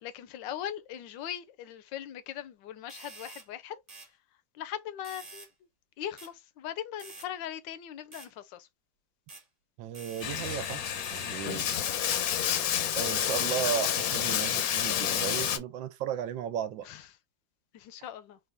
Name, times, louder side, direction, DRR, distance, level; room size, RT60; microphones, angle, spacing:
voice 1, 0.0-3.8 4.5-5.5 6.0-8.7 16.8-17.1 17.7-18.4, left 10 dB, 85° left, 1.3 m, -40 dB
sound 1, 2.9-3.5 3.9-4.1 5.0-5.5 6.2-6.3 7.0-7.3 8.1-8.3 9.3-9.4 9.9-11.3, right 2 dB, 25° right, 1.1 m, -47 dB
voice 2, 9.8-10.8 11.1-11.8 12.9-16.9, right 10 dB, 90° right, 1.4 m, -35 dB
Bathtub (filling or washing), 10.2-15.6, left 9 dB, 65° left, 0.9 m, -29 dB
4.1 x 2.6 x 3.3 m
omnidirectional pair, 2.0 m